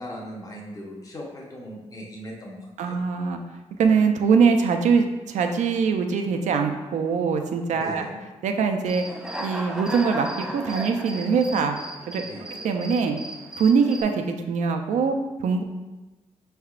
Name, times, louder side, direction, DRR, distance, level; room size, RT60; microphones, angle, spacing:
voice 1, 0.0-2.6 2.8-2.9 7.8-8.2 12.2-12.4, equal, 30° left, -2 dB, 0.8 m, -38 dB
voice 2, 2.8-3.4 3.8-8.0 8.4-9.0 9.4-11.8 12.1-12.2 12.6-13.2 13.6-15.6, right 5 dB, 90° right, 5 dB, 0.4 m, -22 dB
Human voice / Cricket, 8.9-14.0, equal, 5° right, 0.3 m, -35 dB
5.5 x 3.4 x 2.4 m, 1.1 s
wide cardioid pair, 120°, 12 cm